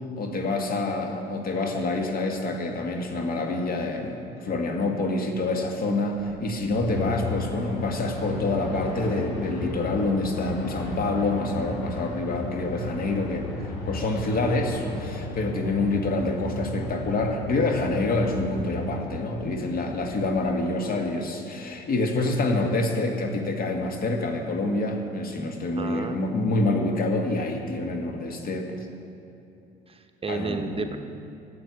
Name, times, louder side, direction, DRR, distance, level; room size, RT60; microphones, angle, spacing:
voice 1, 0.2-28.9 30.3-31.0, left 2 dB, 45° left, 3 dB, 2.0 m, -27 dB
sound 1, 6.1-20.5, right 1 dB, 5° left, 2.1 m, -44 dB
sound 2, 6.8-19.0, left 2 dB, 65° left, 3.6 m, -34 dB
voice 2, 25.7-26.2 29.9-31.0, right 4 dB, 30° right, 6 dB, 0.9 m, -32 dB
12.5 x 7.9 x 8.4 m, 2.7 s
hypercardioid pair, 65°, 20 cm